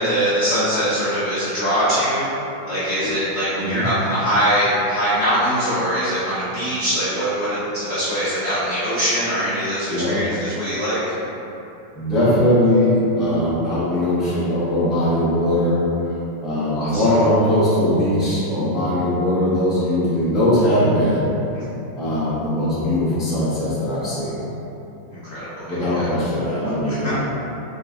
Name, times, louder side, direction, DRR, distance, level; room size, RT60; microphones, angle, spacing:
voice 1, 0.0-2.3 2.7-11.0 16.8-17.2 21.5-21.6 25.1-25.9 26.9-27.1, equal, 55° left, -11 dB, 0.7 m, -22 dB
voice 2, 9.9-10.2 11.9-15.8 16.4-21.3 21.9-24.4 25.7-27.2, left 1 dB, ahead, -11 dB, 0.6 m, -20 dB
3.9 x 3.1 x 3.7 m, 3.0 s
omnidirectional pair, 2.2 m